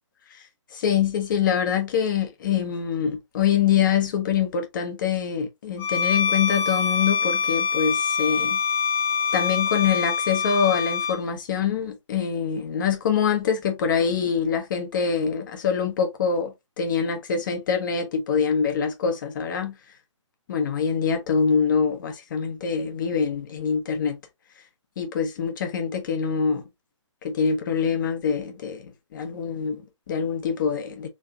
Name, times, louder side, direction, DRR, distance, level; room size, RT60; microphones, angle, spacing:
voice 1, 0.7-8.6 9.3-19.8 20.5-24.2 25.0-26.6 27.2-28.8 29.1-31.1, left 7 dB, 40° left, 0.9 m, -25 dB
Bowed string instrument, 5.8-11.2, left 6 dB, 15° left, 0.7 m, -24 dB
3.2 x 2.8 x 3.6 m
hypercardioid pair, 155°, 16 cm